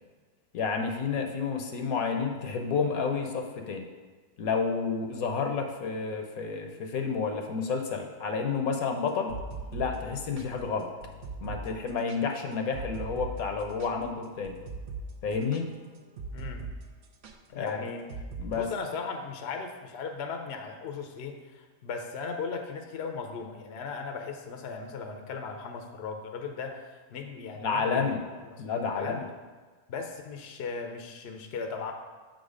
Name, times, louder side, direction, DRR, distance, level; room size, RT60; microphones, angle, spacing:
voice 1, 0.5-3.9 4.4-9.3 9.7-10.9 11.4-14.6 15.2-15.7 17.6-17.9 18.4-18.7 27.6-28.2 28.6-29.2, left 5 dB, 75° left, 4 dB, 1.2 m, -30 dB
sound 1, 9.1-16.8 17.0-17.3 18.1-18.5, right 3 dB, 60° right, 0.9 m, -40 dB
voice 2, 16.3-16.6 17.5-18.1 18.5-28.1 28.5-28.6 28.9-29.3 29.9-31.9, left 5 dB, 55° left, 4 dB, 0.8 m, -37 dB
7.4 x 4.0 x 5.0 m, 1.4 s
omnidirectional pair, 1.6 m